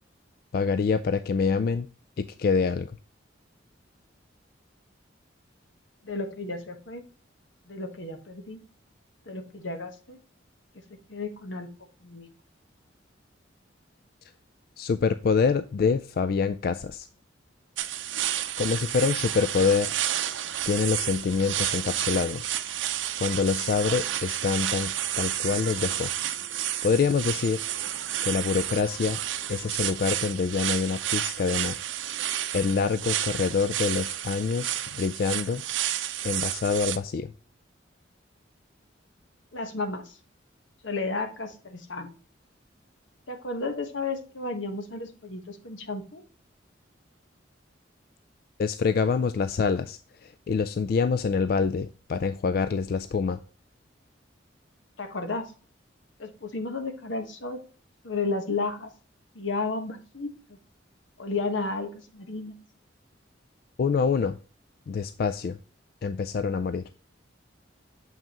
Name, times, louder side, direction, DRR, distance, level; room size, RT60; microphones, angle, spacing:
voice 1, 0.5-1.9 2.2-2.9 14.8-17.1 18.6-19.9 20.7-22.6 23.2-26.1 26.8-27.6 28.2-29.2 29.5-31.8 32.5-35.6 36.2-37.3 48.6-53.4 63.8-64.4 64.9-65.6 66.0-66.9, left 5 dB, 50° left, 12 dB, 0.3 m, -26 dB
voice 2, 6.0-7.0 7.7-8.6 9.3-10.2 11.1-11.7 12.0-12.3 39.5-40.2 40.8-42.1 43.3-46.2 55.0-55.5 56.2-57.6 58.0-58.9 59.3-60.6 61.2-62.5, left 3 dB, 80° left, 6 dB, 1.2 m, -33 dB
sound 1, 17.8-37.0, right 12 dB, 85° right, 0.6 m, -31 dB
sound 2, 20.5-29.7, right 1 dB, 35° left, 2.7 m, -55 dB
7.3 x 5.5 x 2.9 m, 0.39 s
head